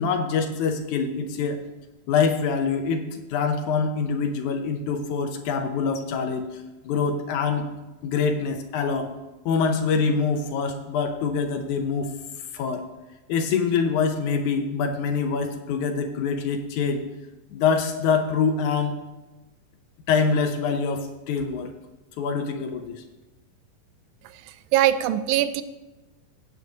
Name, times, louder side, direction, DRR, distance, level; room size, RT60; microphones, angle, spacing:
voice 1, 0.0-1.6 2.1-7.7 8.0-9.1 9.5-12.1 12.5-12.8 13.3-17.1 17.5-18.9 20.1-21.7 22.2-23.0, left 5 dB, 75° left, 5 dB, 1.9 m, -25 dB
voice 2, 24.4-25.6, right 12 dB, 85° right, 12 dB, 2.4 m, -22 dB
15.5 x 9.3 x 2.8 m, 1.1 s
omnidirectional pair, 4.1 m